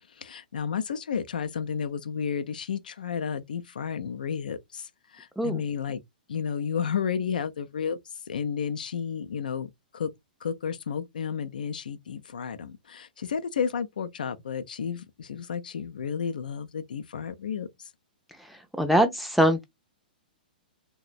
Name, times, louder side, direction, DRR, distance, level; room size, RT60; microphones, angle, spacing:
voice 1, 0.1-6.0 6.3-8.0 8.3-10.1 10.4-17.9, left 7 dB, 65° left, 0.4 m, -32 dB
voice 2, 18.8-19.6, equal, ahead, 0.5 m, -22 dB
3.1 x 2.1 x 2.3 m
figure-of-eight pair, 110°, 5 cm